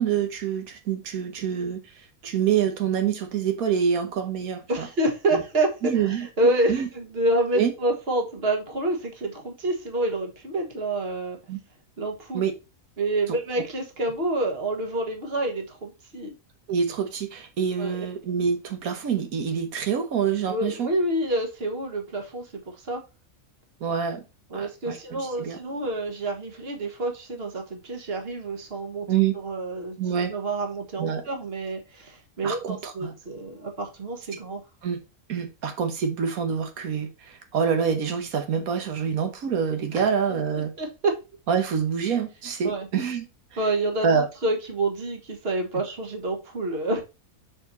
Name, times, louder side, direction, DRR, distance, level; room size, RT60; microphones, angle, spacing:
voice 1, 0.0-1.8 2.2-4.9 5.8-6.3 6.7-6.9 7.5-7.7 11.5-11.6 12.3-12.5 16.7-20.9 23.8-24.2 24.5-25.6 29.1-29.3 30.0-30.3 31.0-31.2 32.4-33.1 34.8-35.0 35.3-40.7 41.5-43.3 44.0-44.3, right 7 dB, 90° right, 1.5 m, -26 dB
voice 2, 4.7-11.4 12.0-12.4 13.0-16.3 17.8-18.1 20.5-23.0 24.5-29.1 29.3-34.6 39.9-40.0 40.5-41.2 42.6-42.9 43.6-47.0, right 2 dB, 45° right, 1.7 m, -28 dB
6.4 x 4.7 x 4.1 m
omnidirectional pair, 1.5 m